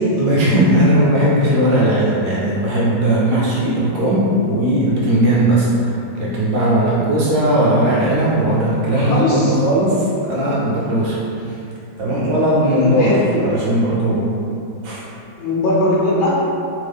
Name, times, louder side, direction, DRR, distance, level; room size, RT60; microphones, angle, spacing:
voice 1, 0.2-11.2 11.4-11.6 12.0-14.4 14.8-15.0, right 1 dB, 70° right, -7 dB, 1.0 m, -17 dB
voice 2, 9.1-9.5 12.8-13.4 15.4-16.4, left 1 dB, 75° left, -6 dB, 1.1 m, -19 dB
3.4 x 2.0 x 3.3 m, 2.7 s
omnidirectional pair, 2.2 m